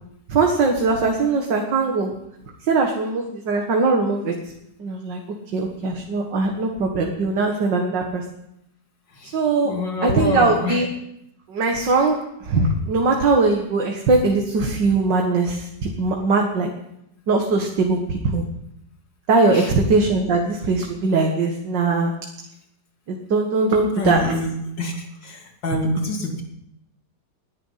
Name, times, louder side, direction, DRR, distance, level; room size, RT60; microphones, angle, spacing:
voice 1, 0.3-2.1 2.7-4.3 4.8-5.2 5.5-8.2 9.3-9.7 10.0-10.9 11.5-12.2 12.4-16.7 17.3-18.4 19.3-22.1 23.1-24.3, right 3 dB, 80° right, 1 dB, 2.3 m, -20 dB
voice 2, 9.6-10.8 19.5-19.7 24.0-26.4, left 1 dB, 85° left, 2 dB, 3.3 m, -26 dB
20.0 x 10.5 x 5.8 m, 0.80 s
omnidirectional pair, 1.9 m